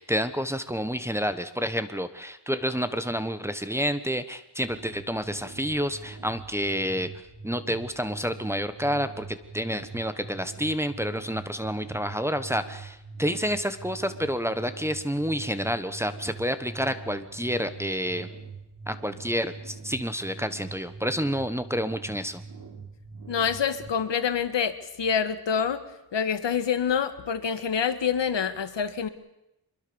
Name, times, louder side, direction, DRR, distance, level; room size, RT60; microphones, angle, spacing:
voice 1, 0.0-7.1 7.4-18.3 18.9-22.4, equal, 5° right, 11 dB, 1.2 m, -29 dB
sound 1, 4.6-23.9, right 4 dB, 50° right, 4.4 m, -43 dB
voice 2, 23.3-25.8 26.1-29.1, left 7 dB, 80° left, 11 dB, 1.7 m, -26 dB
24.5 x 22.5 x 7.0 m, 0.86 s
wide cardioid pair, 145°, 43 cm